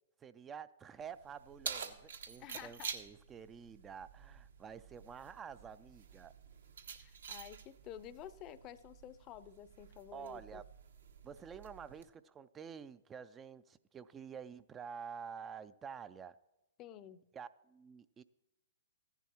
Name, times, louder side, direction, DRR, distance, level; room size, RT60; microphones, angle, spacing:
voice 1, 0.2-6.3 10.1-10.6 11.2-16.4 17.3-18.2, right 7 dB, 20° right, 0.3 m, -49 dB
Keys jangling, 1.0-12.0, right 6 dB, 75° right, 1.1 m, -49 dB
voice 2, 2.4-2.9 7.0-10.6 16.8-17.2, left 11 dB, 30° left, 0.5 m, -51 dB
14.5 x 10.5 x 3.0 m
hypercardioid pair, 125°, 0 cm